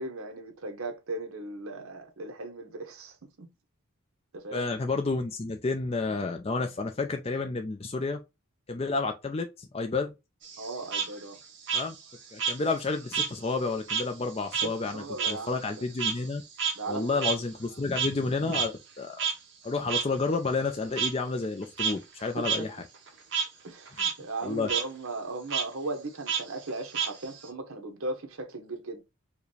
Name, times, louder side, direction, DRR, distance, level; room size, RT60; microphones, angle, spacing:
voice 1, 0.0-3.5 4.3-4.7 10.6-11.4 14.6-15.8 16.7-17.2 22.2-22.7 23.6-29.0, right 2 dB, 75° right, 1.1 m, -37 dB
voice 2, 4.5-8.2 8.7-10.1 11.7-12.0 12.3-16.4 16.9-19.2 19.6-22.8 24.4-24.7, left 3 dB, 25° left, 0.4 m, -30 dB
Frog, 10.4-13.4 13.7-18.3 18.5-18.7 19.2-19.3 19.9-20.0 21.0-21.1 21.6-21.9 22.4-22.6 22.9-23.5 23.9-24.1 24.4-24.8 25.5-25.6 26.3-27.5, right 6 dB, 55° right, 1.2 m, -30 dB
4.7 x 2.3 x 3.1 m
head